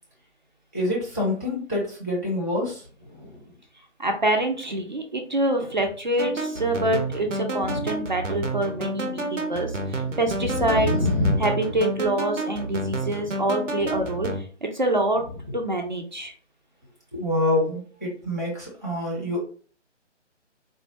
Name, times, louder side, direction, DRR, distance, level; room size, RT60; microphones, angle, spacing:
voice 1, 0.7-2.8 3.2-3.4 7.7-7.8 10.3-11.4 17.1-19.4, left 2 dB, 15° left, -6 dB, 0.5 m, -26 dB
voice 2, 4.0-10.9 11.4-15.2 15.5-16.3, right 1 dB, 40° right, 3 dB, 0.5 m, -26 dB
sound 1, 6.2-14.4, right 2 dB, 90° right, 0.7 m, -30 dB
3.8 x 2.1 x 3.0 m, 0.41 s
figure-of-eight pair, 145°, 37 cm